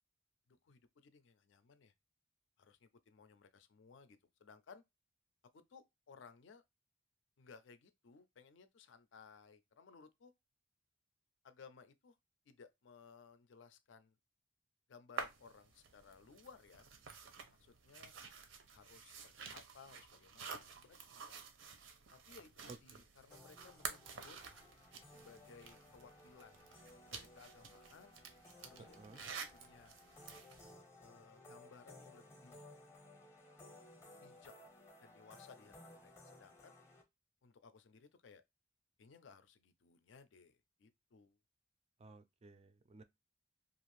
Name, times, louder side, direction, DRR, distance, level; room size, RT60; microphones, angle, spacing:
voice 1, 0.5-1.9 2.6-4.8 5.5-6.6 7.4-10.3 11.4-12.2 12.5-14.2 14.9-16.9 17.5-18.1 18.7-21.4 22.1-24.4 25.1-26.6 27.1-28.2 28.6-29.9 31.0-32.7 34.2-34.5 35.0-36.7 37.4-38.4 39.0-41.4, left 5 dB, 70° left, 0.4 m, -61 dB
sound 1, 15.2-30.7, right 5 dB, 80° right, 0.6 m, -51 dB
voice 2, 22.7-23.0 28.8-29.2 42.0-43.0, right 3 dB, 35° right, 0.3 m, -56 dB
sound 2, 23.3-37.0, left 1 dB, 15° left, 0.6 m, -59 dB
2.5 x 2.4 x 3.0 m
head